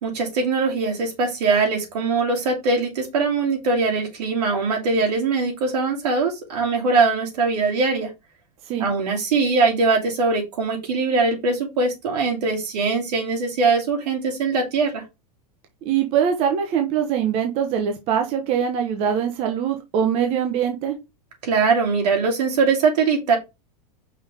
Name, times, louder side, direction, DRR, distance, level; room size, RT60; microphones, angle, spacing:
voice 1, 0.0-8.1 8.8-15.0 21.4-23.4, right 4 dB, 80° right, 1 dB, 2.7 m, -21 dB
voice 2, 15.8-20.9, right 8 dB, 30° right, 4 dB, 0.9 m, -22 dB
5.5 x 3.5 x 4.9 m, 0.23 s
supercardioid pair, 165°, 20 cm